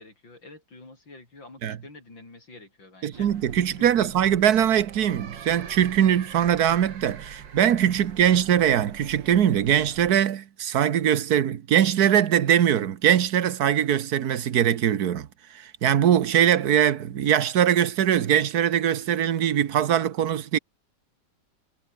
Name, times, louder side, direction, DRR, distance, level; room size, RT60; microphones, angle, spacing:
voice 1, 0.0-3.5 3.8-4.1, left 2 dB, 85° left, 7.4 m, -47 dB
voice 2, 3.0-15.3 15.5-20.6, right 10 dB, 60° right, 1.5 m, -22 dB
sound 1, 3.1-10.1, right 7 dB, 75° right, 2.4 m, -43 dB
omnidirectional pair, 2.0 m